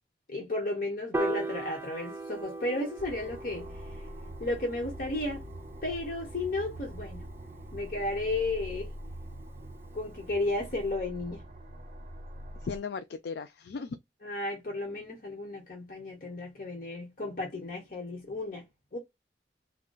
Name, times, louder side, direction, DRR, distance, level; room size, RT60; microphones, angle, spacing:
voice 1, 0.3-4.0 4.4-5.4 5.8-7.2 7.7-8.9 9.9-11.4 14.2-18.6 18.9-19.0, left 2 dB, 50° left, 1.1 m, -33 dB
Piano, 1.1-7.4, right 2 dB, 15° right, 0.4 m, -39 dB
sound 1, 3.0-12.8, right 1 dB, 40° right, 0.7 m, -44 dB
voice 2, 12.6-14.0, left 5 dB, 65° left, 0.4 m, -36 dB
3.8 x 2.2 x 2.3 m
head